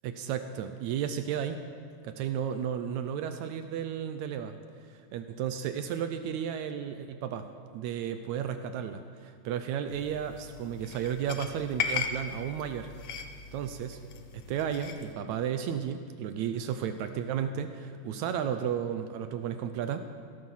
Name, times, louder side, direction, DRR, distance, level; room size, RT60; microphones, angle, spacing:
voice 1, 0.0-1.6 2.0-4.6 4.9-7.5 7.7-12.9 13.5-14.0 14.5-20.0, right 8 dB, 75° right, 8 dB, 1.9 m, -33 dB
sound 1, 9.9-15.1, left 6 dB, 65° left, 1.7 m, -38 dB
16.0 x 13.5 x 5.6 m, 2.1 s
omnidirectional pair, 3.6 m